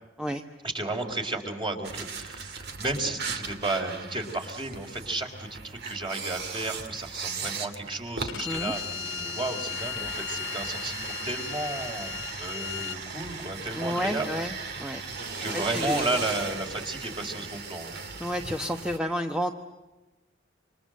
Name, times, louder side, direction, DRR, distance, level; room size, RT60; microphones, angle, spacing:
voice 1, 0.6-14.3 14.9-15.1 15.4-18.0, right 2 dB, 25° right, 3 dB, 4.0 m, -33 dB
sound 1, 1.8-19.0, right 4 dB, 60° right, 2.7 m, -37 dB
Bowed string instrument, 8.3-13.0, left 11 dB, 70° left, 0.9 m, -36 dB
voice 2, 13.7-15.0 15.5-16.1 18.2-19.5, equal, 5° right, 5 dB, 1.1 m, -30 dB
28.5 x 26.5 x 7.7 m, 1.1 s
head